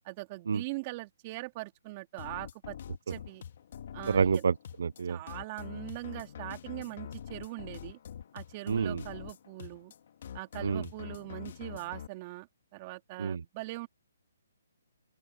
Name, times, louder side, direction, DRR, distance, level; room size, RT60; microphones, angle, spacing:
voice 1, 0.0-2.8 3.1-3.4 3.9-4.4 5.0-8.0 8.3-9.9 10.3-13.9, right 21 dB, 30° right, 2.6 m, -41 dB
sound 1, 2.2-12.1, left 9 dB, 55° left, 2.2 m, -45 dB
voice 2, 4.1-5.2 8.7-9.0 10.6-10.8 13.2-13.4, right 6 dB, 70° right, 0.5 m, -28 dB
open air
hypercardioid pair, 150°, 0 cm